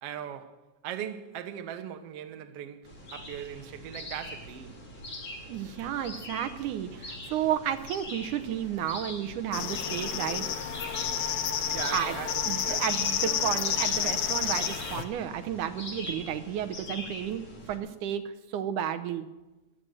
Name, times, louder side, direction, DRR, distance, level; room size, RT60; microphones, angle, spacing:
voice 1, 0.0-0.6 0.8-2.8 3.1-4.8 11.7-12.8, right 9 dB, 60° right, 1.8 m, -39 dB
sound 1, 2.8-17.8, left 1 dB, 50° left, 4.3 m, -43 dB
voice 2, 5.5-10.5 11.9-12.2 12.4-19.3, right 10 dB, 80° right, 2.3 m, -32 dB
sound 2, 9.5-15.0, left 8 dB, 65° left, 1.6 m, -30 dB
15.5 x 12.0 x 7.8 m
omnidirectional pair, 3.6 m